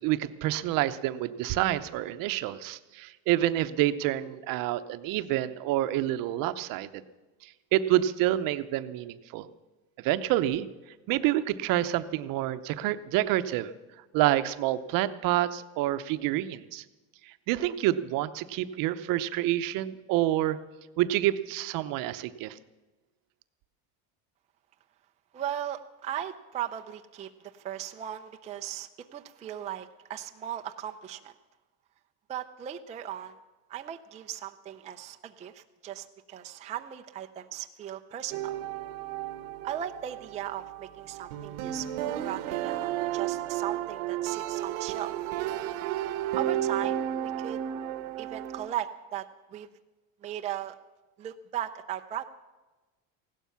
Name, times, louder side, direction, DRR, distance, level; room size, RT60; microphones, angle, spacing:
voice 1, 0.0-7.0 7.4-9.5 10.0-10.7 11.1-13.7 14.1-16.8 17.2-20.6 21.0-22.6, right 14 dB, 55° right, 12 dB, 0.8 m, -28 dB
voice 2, 25.3-31.3 32.3-33.4 33.7-38.6 39.6-45.1 46.3-47.6 48.2-49.7 50.2-50.8 51.2-52.2, right 11 dB, 20° right, 6 dB, 0.4 m, -37 dB
sound 1, 38.3-48.7, right 12 dB, 85° right, 1.0 m, -33 dB
16.0 x 12.0 x 7.0 m, 1.2 s
cardioid pair, 150°, 41 cm